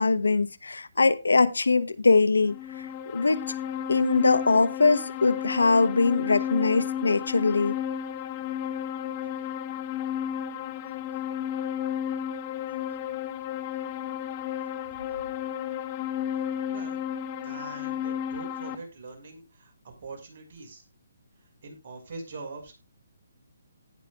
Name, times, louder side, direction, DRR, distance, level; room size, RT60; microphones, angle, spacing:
voice 1, 0.0-2.9 3.1-3.4 3.9-7.8, left 3 dB, 85° left, 1.0 m, -22 dB
sound 1, 2.4-18.8, left 9 dB, 30° left, 1.2 m, -33 dB
voice 2, 16.7-17.0 17.4-20.8 21.4-22.7, right 3 dB, 50° right, 5.6 m, -43 dB
18.0 x 6.1 x 2.5 m
hypercardioid pair, 145°, 0 cm